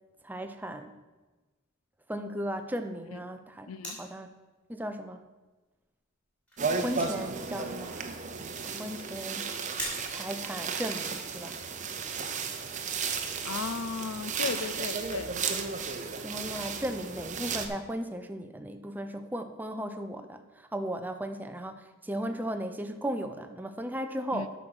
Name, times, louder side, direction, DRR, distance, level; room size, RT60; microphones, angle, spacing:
voice 1, 0.2-0.9 2.1-4.3 4.7-5.2 6.8-8.0 8.6-9.6 10.1-11.6 16.2-24.5, right 1 dB, 10° right, 7 dB, 0.5 m, -36 dB
voice 2, 3.7-4.0 13.4-15.3 24.3-24.5, left 5 dB, 75° left, 13 dB, 0.5 m, -35 dB
sound 1, 3.8-4.3 5.1-5.2 5.8-5.9 6.1-6.2 6.5-7.5 7.8-7.9 9.2-9.3 9.8-10.4 10.9-11.0, equal, 5° left, 3.0 m, -40 dB
sound 2, 6.6-17.7, right 5 dB, 35° right, 0.7 m, -34 dB
8.6 x 6.2 x 6.2 m, 1.2 s
head